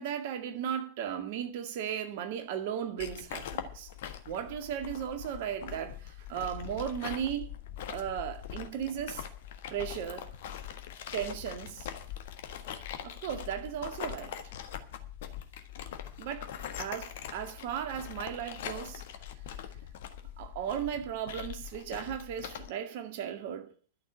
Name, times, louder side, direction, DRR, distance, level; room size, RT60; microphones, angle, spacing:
voice 1, 0.0-3.9 4.3-7.5 7.8-9.3 9.7-10.3 11.1-11.9 13.0-14.4 16.2-19.0 20.4-23.7, right 9 dB, 50° right, 2.0 m, -36 dB
sound 1, 3.0-22.7, left 10 dB, 55° left, 1.5 m, -42 dB
12.0 x 6.9 x 8.5 m
figure-of-eight pair, 90°, 0 cm